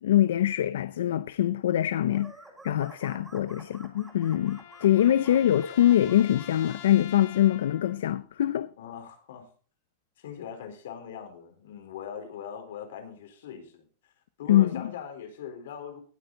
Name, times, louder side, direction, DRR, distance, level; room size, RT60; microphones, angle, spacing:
voice 1, 0.0-2.3 2.6-8.7 14.5-14.9, left 12 dB, 85° left, 0.6 m, -24 dB
sound 1, 2.1-6.8, right 2 dB, 5° right, 2.0 m, -50 dB
sound 2, 3.4-8.1, left 12 dB, 50° left, 1.5 m, -47 dB
voice 2, 5.2-5.6 8.8-9.5 10.2-14.1 14.4-16.0, left 8 dB, 65° left, 3.9 m, -41 dB
18.5 x 8.9 x 3.9 m
supercardioid pair, 175°, 0 cm